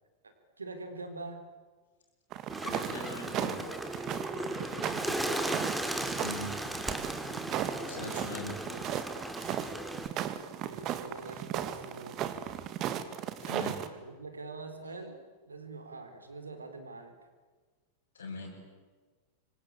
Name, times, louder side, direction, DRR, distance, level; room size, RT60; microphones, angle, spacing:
voice 1, 0.2-1.4 4.5-5.5 7.3-8.8 10.6-12.5 13.9-15.2 15.5-17.1, right 3 dB, 75° right, 7 dB, 4.2 m, -45 dB
sound 1, 2.3-13.9, right 11 dB, 35° right, 2.1 m, -36 dB
Bird, 2.5-10.1, right 1 dB, 5° right, 3.1 m, -36 dB
voice 2, 2.6-3.6 6.2-6.5 7.8-8.5 13.4-13.8 18.1-18.5, left 3 dB, 70° left, -4 dB, 6.0 m, -41 dB
26.5 x 25.0 x 8.9 m, 1.4 s
figure-of-eight pair, 90°, 0 cm